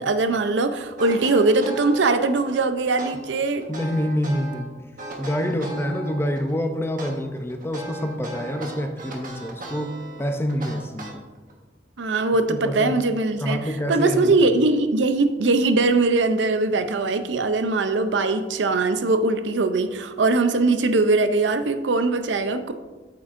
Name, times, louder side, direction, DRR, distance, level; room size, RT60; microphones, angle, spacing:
voice 1, 0.0-3.7 12.0-13.6 13.9-22.7, right 3 dB, 75° right, 9 dB, 0.6 m, -21 dB
sound 1, 1.0-2.5 3.0-4.6 5.0-6.5 7.0-11.5, right 2 dB, 50° right, 1.3 m, -37 dB
voice 2, 3.7-4.9 5.2-11.2 12.5-13.0 13.4-14.4, equal, 15° left, 6 dB, 0.5 m, -27 dB
8.5 x 7.3 x 2.5 m, 1.2 s
head